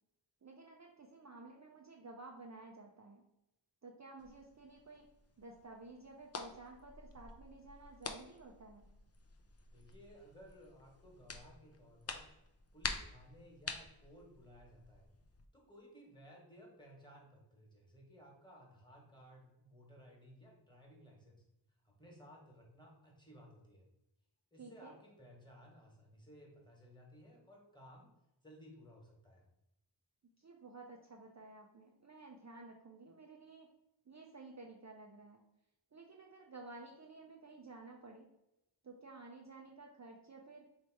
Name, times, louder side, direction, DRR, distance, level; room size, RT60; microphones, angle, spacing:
voice 1, 0.4-3.2 3.8-5.1 5.4-8.9 24.6-25.0 30.2-33.7 34.1-35.4 35.9-38.3 38.8-40.7, right 3 dB, 40° right, 0 dB, 0.5 m, -53 dB
sound 1, 4.2-15.5, left 4 dB, 35° left, 0.4 m, -49 dB
voice 2, 9.7-12.2 12.7-15.1 15.5-21.4 21.8-23.8 24.5-28.1 28.4-29.4, equal, 10° left, -1 dB, 1.3 m, -58 dB
3.2 x 2.8 x 4.5 m, 0.88 s
wide cardioid pair, 45°, 47 cm